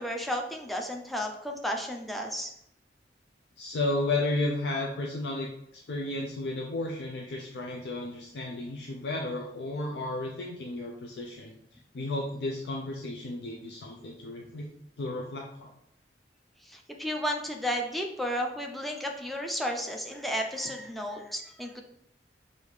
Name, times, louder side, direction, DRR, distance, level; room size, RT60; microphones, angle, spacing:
voice 1, 0.0-2.5 16.7-21.8, equal, ahead, 2 dB, 0.4 m, -33 dB
voice 2, 3.6-11.5 11.9-14.7 15.0-15.7, left 2 dB, 70° left, -1 dB, 0.5 m, -33 dB
4.9 x 2.7 x 3.2 m, 0.75 s
head